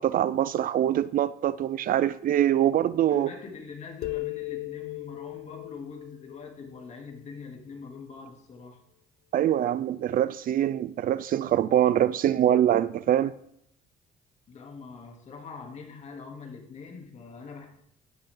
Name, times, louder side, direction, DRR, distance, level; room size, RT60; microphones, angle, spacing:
voice 1, 0.0-3.3 9.3-13.3, right 11 dB, 55° right, 0.6 m, -24 dB
voice 2, 3.0-8.8 14.5-17.7, left 5 dB, 45° left, 3.2 m, -43 dB
sound 1, 4.0-7.5, left 23 dB, 70° left, 0.5 m, -38 dB
16.5 x 11.5 x 3.9 m
cardioid pair, 110°, 17 cm